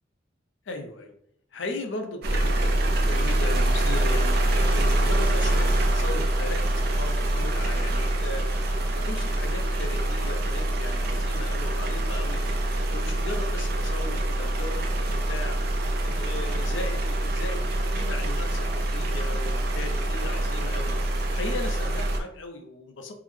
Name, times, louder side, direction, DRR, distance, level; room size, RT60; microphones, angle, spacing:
voice 1, 0.7-1.1 1.5-8.4 8.9-12.4 12.8-15.6 16.0-20.9 21.3-23.1, left 2 dB, 80° left, 4 dB, 0.6 m, -37 dB
sound 1, 2.2-22.2, right 1 dB, 55° right, 0.5 m, -25 dB
3.7 x 2.0 x 3.1 m, 0.70 s
head